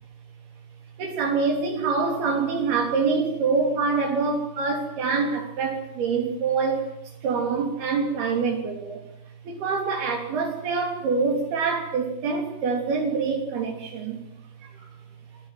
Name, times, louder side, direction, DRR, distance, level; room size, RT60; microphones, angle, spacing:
voice 1, 1.0-9.0 9.4-14.2 14.6-14.9, right 4 dB, 75° right, 2 dB, 5.1 m, -25 dB
27.0 x 22.0 x 7.7 m, 0.78 s
omnidirectional pair, 4.5 m